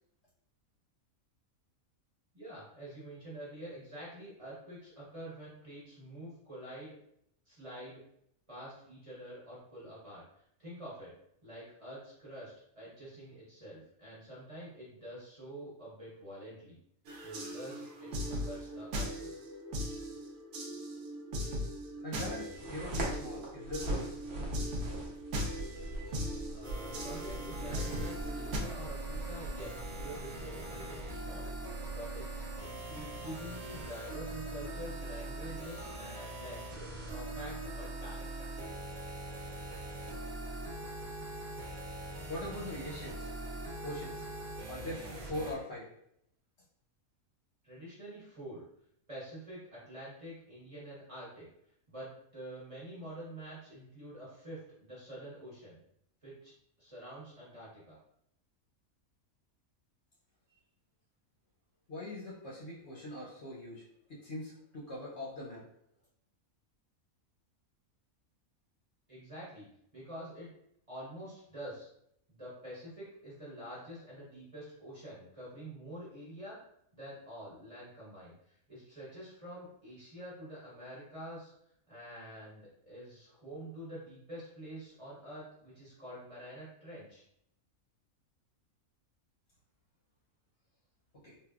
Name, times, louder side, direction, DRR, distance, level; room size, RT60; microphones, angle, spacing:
voice 1, 2.3-7.0 7.5-8.0 8.5-10.2 10.6-11.1 11.4-16.8 17.1-19.3 26.5-38.2 47.6-48.6 49.1-51.5 51.9-55.8 56.2-56.5 56.8-58.0 69.1-69.7 69.9-70.5 70.9-71.9 72.3-76.6 76.9-81.5 81.9-87.2, right 1 dB, 25° right, -8 dB, 0.9 m, -47 dB
sound 1, 17.1-28.6, equal, 85° right, 1.1 m, -39 dB
voice 2, 22.0-24.2 42.3-43.3 43.8-44.3 44.7-45.9 61.9-65.7 91.1-91.4, left 1 dB, 60° left, -5 dB, 0.8 m, -42 dB
sound 2, 22.5-36.0, right 1 dB, 65° right, 1.0 m, -43 dB
sound 3, 26.6-45.5, right 1 dB, 45° right, 0.5 m, -42 dB
3.5 x 2.4 x 2.3 m, 0.73 s
omnidirectional pair, 1.5 m